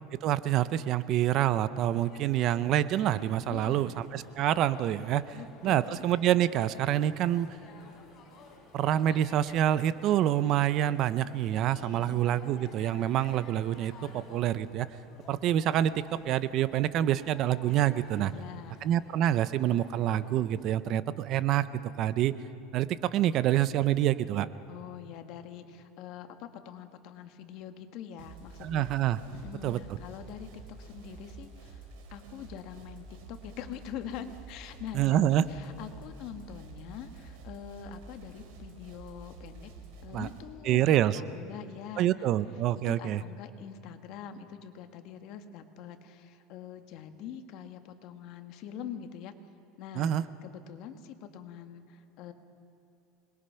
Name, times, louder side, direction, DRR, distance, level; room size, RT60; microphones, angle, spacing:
voice 1, 0.2-5.4 5.6-7.5 8.7-14.9 15.3-18.3 18.8-22.4 22.7-24.5 28.6-29.2 29.6-29.8 34.9-35.4 40.1-40.3 40.6-41.2 42.0-43.2 50.0-50.2, right 12 dB, 45° right, 15 dB, 0.7 m, -27 dB
sound 1, 1.9-20.7, left 4 dB, 35° left, 3.9 m, -54 dB
voice 2, 3.5-4.0 5.3-6.1 11.8-12.2 18.2-18.8 24.7-28.9 29.3-39.7 40.0-40.9 41.1-42.3 42.7-49.3 49.8-50.1 50.4-52.3, left 9 dB, 55° left, 8 dB, 1.6 m, -44 dB
sound 2, 28.2-40.4, right 4 dB, 75° right, 4.3 m, -49 dB
27.0 x 21.5 x 5.7 m, 2.9 s
supercardioid pair, 145°, 0 cm